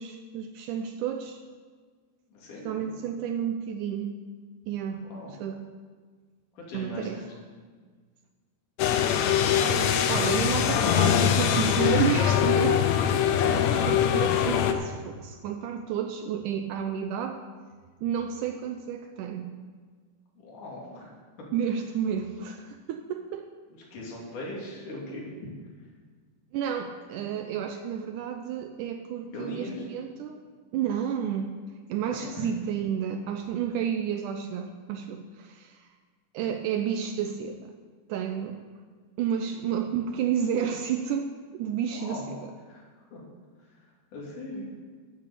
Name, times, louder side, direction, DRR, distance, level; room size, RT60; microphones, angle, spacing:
voice 1, 0.0-1.4 2.6-4.2 4.7-5.6 6.7-7.3 9.4-13.1 13.4-17.4 18.0-19.5 21.5-23.5 26.5-30.4 30.7-31.5 31.9-35.9 36.3-37.7 38.1-38.6 39.2-42.5, right 8 dB, 80° right, 6 dB, 1.9 m, -31 dB
voice 2, 2.3-2.9 5.1-5.3 6.6-7.3 20.4-21.1 23.9-25.3 29.3-29.8 32.1-32.5 41.9-42.3 42.7-42.8 43.1-43.2 44.1-44.6, left 2 dB, 65° left, -3 dB, 3.9 m, -39 dB
sound 1, 8.8-14.7, left 9 dB, 85° left, 1.5 m, -23 dB
10.5 x 8.6 x 6.9 m, 1.5 s
omnidirectional pair, 4.0 m